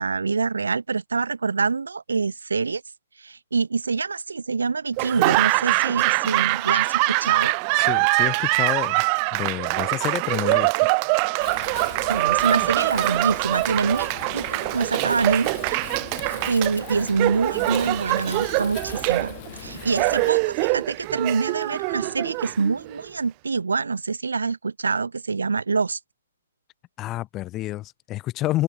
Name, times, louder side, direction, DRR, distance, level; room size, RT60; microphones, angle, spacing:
voice 1, 0.0-2.8 3.2-7.5 12.1-15.8 16.2-26.0, right 4 dB, 80° right, 1.9 m, -26 dB
Laughter / Applause, 5.0-23.0, right 37 dB, 35° right, 1.2 m, -23 dB
voice 2, 7.8-9.0 9.3-10.9 27.0-28.6, left 16 dB, 25° left, 1.7 m, -29 dB
Wind, 11.4-20.3, left 19 dB, 40° left, 2.9 m, -40 dB
open air
hypercardioid pair, 135°, 0 cm